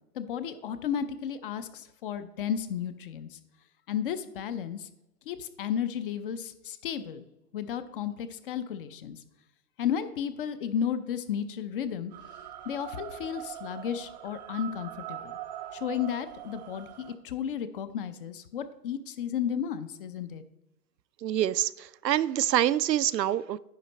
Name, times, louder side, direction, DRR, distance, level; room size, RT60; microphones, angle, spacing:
voice 1, 0.1-3.4 3.9-4.9 5.3-7.2 7.5-9.2 9.8-12.1 12.7-15.3 15.7-20.4, left 8 dB, 35° left, 12 dB, 0.5 m, -33 dB
sound 1, 12.1-17.2, right 12 dB, 30° right, 0.4 m, -42 dB
voice 2, 21.2-23.6, right 12 dB, 90° right, 16 dB, 0.5 m, -26 dB
10.0 x 5.5 x 4.1 m, 0.94 s
hypercardioid pair, 125°, 48 cm